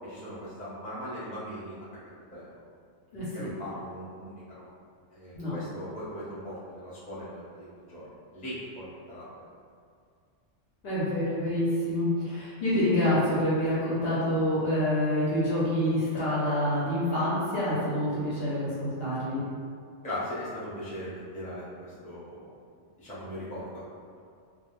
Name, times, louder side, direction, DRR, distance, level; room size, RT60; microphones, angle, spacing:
voice 1, 0.0-1.9 2.3-2.5 3.3-4.7 5.1-9.3 20.0-22.5 23.0-23.8, equal, 10° left, -11 dB, 0.7 m, -39 dB
voice 2, 3.1-3.5 5.4-5.6 10.8-19.4, left 1 dB, 60° left, -9 dB, 0.7 m, -27 dB
2.3 x 2.0 x 3.0 m, 2.2 s
omnidirectional pair, 1.3 m